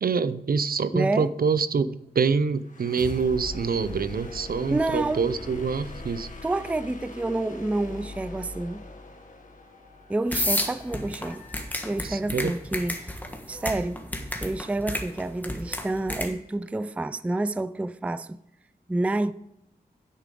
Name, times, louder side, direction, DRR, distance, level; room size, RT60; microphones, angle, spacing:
voice 1, 0.0-6.3 12.0-12.5, right 5 dB, 60° right, 0.6 m, -26 dB
voice 2, 0.9-1.3 4.7-5.3 6.4-8.8 10.1-11.4 11.8-13.2 13.5-14.0 14.4-18.4 18.9-19.3, right 2 dB, 10° right, 0.3 m, -28 dB
sound 1, 2.7-12.4, left 2 dB, 50° left, 1.8 m, -41 dB
sound 2, 10.3-16.3, left 1 dB, 10° left, 1.4 m, -31 dB
10.0 x 8.3 x 3.8 m
wide cardioid pair, 105°, 17 cm